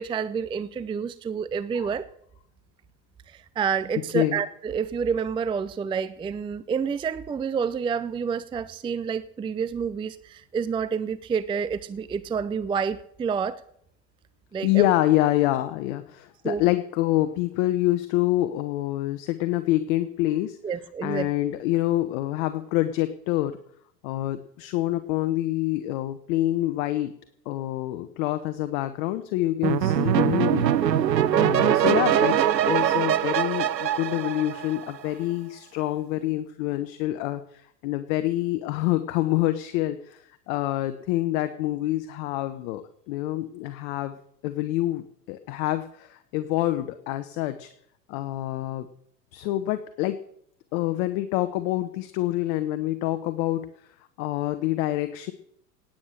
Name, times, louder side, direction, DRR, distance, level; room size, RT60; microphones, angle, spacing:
voice 1, 0.0-2.1 3.3-13.6 14.5-14.9 16.4-16.6 20.6-21.3, right 6 dB, 10° right, 16 dB, 0.5 m, -28 dB
voice 2, 14.6-20.6 21.0-23.6 24.0-27.1 27.4-31.0 31.3-42.8 43.1-44.2 44.4-47.7 48.1-48.9 49.3-50.2 50.7-53.7 54.2-55.3, left 15 dB, 55° left, 10 dB, 1.2 m, -26 dB
sound 1, 29.6-35.1, right 10 dB, 90° right, 0.6 m, -22 dB
18.5 x 8.9 x 6.6 m, 0.69 s
figure-of-eight pair, 80°, 49 cm